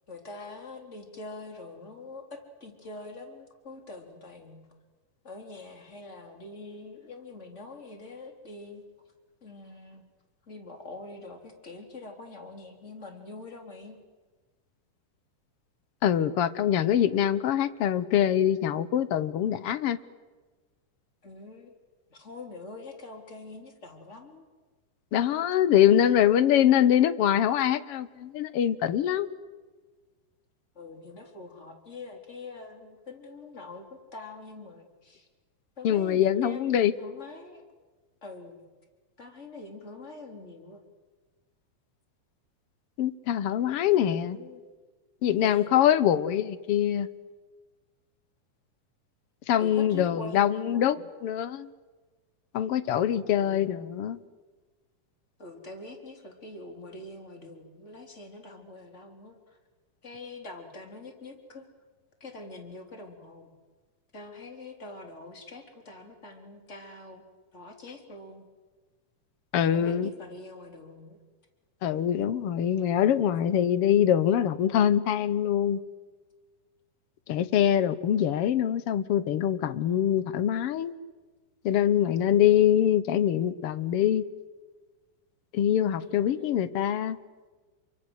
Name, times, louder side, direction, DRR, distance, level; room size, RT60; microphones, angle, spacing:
voice 1, 0.1-4.6 5.2-8.8 9.4-10.0 10.5-14.0 21.2-21.7 22.1-24.4 30.7-35.3 35.8-37.6 38.2-38.6 39.2-40.8 43.9-44.6 45.4-45.7 49.6-51.1 53.4-53.7 55.4-59.6 60.0-61.7 62.2-63.5 64.1-67.2 67.5-68.4 69.7-71.2 86.0-86.8, left 2 dB, 20° left, 4 dB, 3.8 m, -44 dB
voice 2, 16.0-20.0 25.1-29.3 35.8-36.9 43.0-44.4 45.2-47.1 49.5-51.7 52.5-54.2 69.5-70.1 71.8-75.8 77.3-80.9 81.6-84.2 85.5-87.2, left 10 dB, 75° left, 14 dB, 1.4 m, -24 dB
29.0 x 24.0 x 8.1 m, 1.3 s
omnidirectional pair, 3.9 m